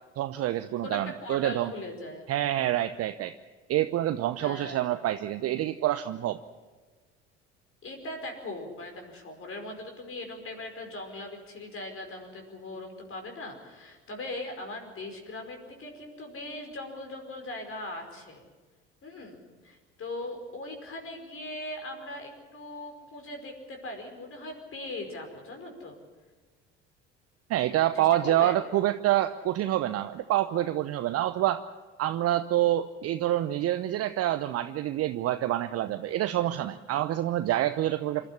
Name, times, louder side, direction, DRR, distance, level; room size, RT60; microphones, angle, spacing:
voice 1, 0.2-1.7 2.3-3.4 3.7-6.4 27.5-31.6 32.0-38.2, right 13 dB, 45° right, 10 dB, 0.8 m, -27 dB
voice 2, 0.8-2.3 4.4-4.8 7.8-18.5 19.0-26.0 27.9-28.6 38.2-38.3, left 2 dB, 40° left, 3 dB, 5.1 m, -40 dB
26.5 x 12.5 x 9.9 m, 1.3 s
figure-of-eight pair, 60°, 34 cm